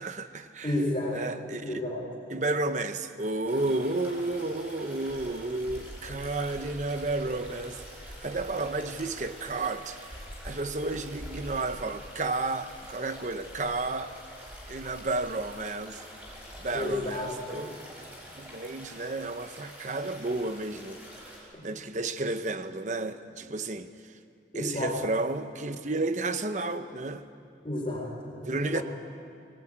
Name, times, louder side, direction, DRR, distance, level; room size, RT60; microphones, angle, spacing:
voice 1, 0.0-0.8 1.1-1.8 2.3-7.8 8.2-10.0 10.4-14.1 14.7-16.0 16.6-17.7 18.4-21.0 21.6-23.9 24.5-27.2 28.5-28.8, right 2 dB, 40° right, 0.9 m, -32 dB
voice 2, 0.6-2.0 16.7-17.7 24.5-25.0 27.6-28.8, left 1 dB, 30° left, 4.1 m, -32 dB
sound 1, 3.5-21.4, equal, 10° right, 5.6 m, -45 dB
21.0 x 20.0 x 8.9 m
head